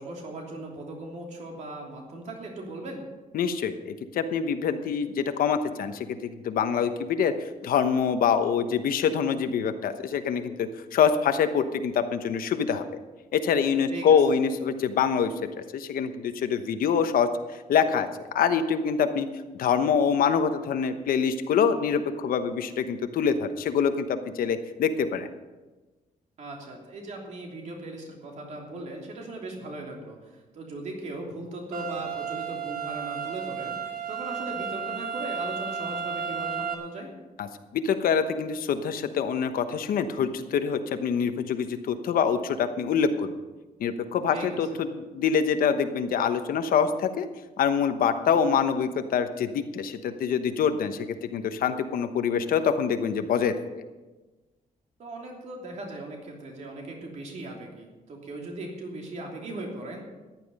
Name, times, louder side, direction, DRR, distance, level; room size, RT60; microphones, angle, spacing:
voice 1, 0.0-3.0 13.9-14.4 26.4-37.1 44.3-44.7 55.0-60.1, right 2 dB, 55° right, 0 dB, 3.1 m, -38 dB
voice 2, 3.3-12.8 13.3-15.3 15.7-17.3 17.7-18.1 18.3-19.3 19.6-25.3 37.4-37.5 37.7-43.4 43.8-47.3 47.6-53.8, left 7 dB, 80° left, 8 dB, 1.1 m, -25 dB
sound 1, 31.7-36.7, right 7 dB, 85° right, 2.1 m, -33 dB
14.5 x 11.0 x 5.4 m, 1.2 s
wide cardioid pair, 175°, 15 cm